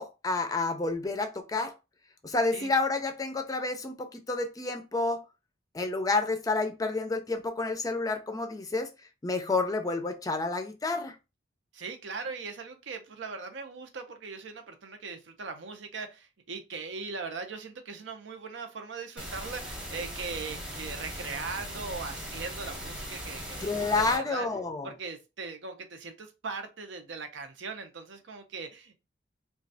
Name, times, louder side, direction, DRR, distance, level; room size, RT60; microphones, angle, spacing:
voice 1, 0.0-1.7 2.2-5.2 5.7-8.9 9.2-11.2 23.6-24.9, left 3 dB, 20° left, 0.4 m, -29 dB
voice 2, 11.7-24.5 24.8-29.0, right 4 dB, 85° right, 0.6 m, -39 dB
sound 1, 19.2-24.2, equal, 5° right, 0.8 m, -39 dB
3.1 x 2.3 x 2.6 m
head